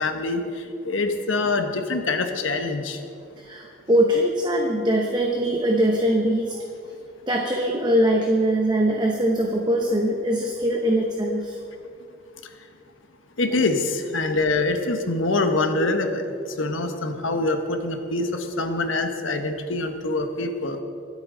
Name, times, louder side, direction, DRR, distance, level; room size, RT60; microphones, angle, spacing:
voice 1, 0.0-3.0 13.4-20.8, left 2 dB, 85° left, 6 dB, 1.2 m, -25 dB
voice 2, 3.4-6.6 7.3-11.6 13.5-13.6, right 1 dB, 20° right, 1 dB, 0.9 m, -22 dB
26.0 x 8.7 x 3.9 m, 2.5 s
head